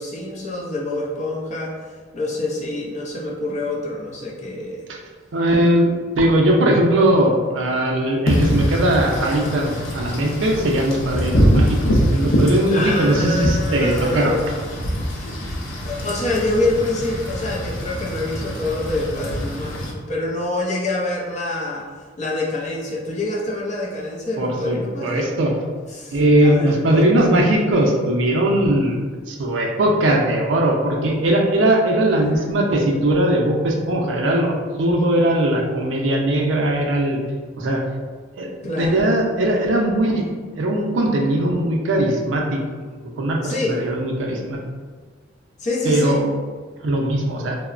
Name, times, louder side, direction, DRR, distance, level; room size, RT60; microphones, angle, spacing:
voice 1, 0.0-4.8 12.7-14.6 15.4-21.9 22.2-25.3 25.9-27.4 32.1-32.6 38.6-39.0 43.4-43.8 45.6-46.2, left 2 dB, 35° left, -3 dB, 0.5 m, -26 dB
voice 2, 5.3-14.4 24.4-25.5 26.1-37.2 37.6-37.8 38.4-38.5 38.8-42.6 42.9-44.6 45.8-46.3 46.8-47.6, right 1 dB, 75° right, 1 dB, 0.4 m, -19 dB
Wind / Rain, 8.3-19.9, equal, 85° left, 0.5 m, -23 dB
2.9 x 2.0 x 2.4 m, 1.5 s
head